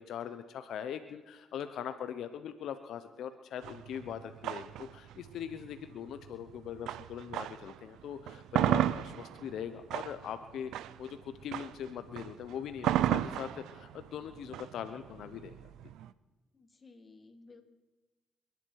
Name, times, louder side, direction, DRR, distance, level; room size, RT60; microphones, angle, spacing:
voice 1, 0.0-15.5, left 9 dB, 75° left, 9 dB, 0.8 m, -41 dB
sound 1, 3.6-7.8 8.2-16.1, right 12 dB, 85° right, 0.5 m, -34 dB
voice 2, 16.5-17.6, left 3 dB, 30° left, 6 dB, 2.1 m, -56 dB
28.5 x 10.5 x 4.7 m, 1.2 s
cardioid pair, 90°, 0 cm